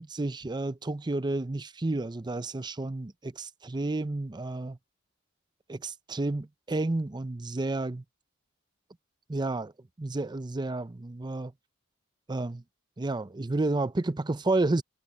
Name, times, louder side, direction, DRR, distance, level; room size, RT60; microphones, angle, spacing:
voice 1, 0.0-4.8 5.7-8.0 9.3-9.7 10.0-11.5 12.3-12.6 13.0-14.8, right 2 dB, 20° right, 0.5 m, -31 dB
head